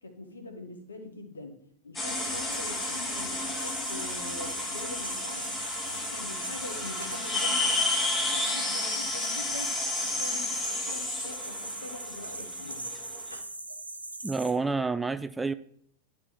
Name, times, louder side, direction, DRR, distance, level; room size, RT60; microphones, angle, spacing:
voice 1, 0.0-1.6 1.8-5.6 5.9-9.7 10.0-12.9, left 2 dB, 75° left, 1.5 m, -43 dB
sound 1, 2.0-13.3, left 2 dB, 15° left, 1.5 m, -32 dB
sound 2, 2.1-14.5, right 2 dB, 85° right, 0.8 m, -40 dB
voice 2, 14.2-15.5, right 4 dB, 10° right, 0.3 m, -29 dB
11.0 x 4.3 x 6.1 m
figure-of-eight pair, 90°, 0 cm